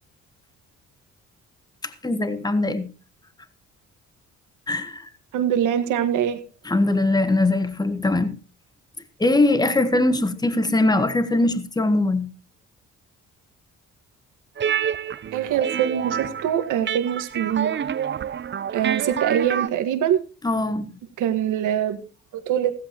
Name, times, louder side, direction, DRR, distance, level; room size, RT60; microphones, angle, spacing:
voice 1, 1.8-2.9 4.7-5.1 6.6-8.4 9.2-12.3 20.4-20.9, left 2 dB, 15° left, 1.3 m, -21 dB
voice 2, 5.3-6.4 15.3-17.9 18.7-20.2 21.2-22.0 22.3-22.7, right 10 dB, 85° right, 1.7 m, -23 dB
sound 1, 14.6-19.7, right 8 dB, 40° right, 0.7 m, -28 dB
16.0 x 14.0 x 3.0 m
cardioid pair, 90°, 30 cm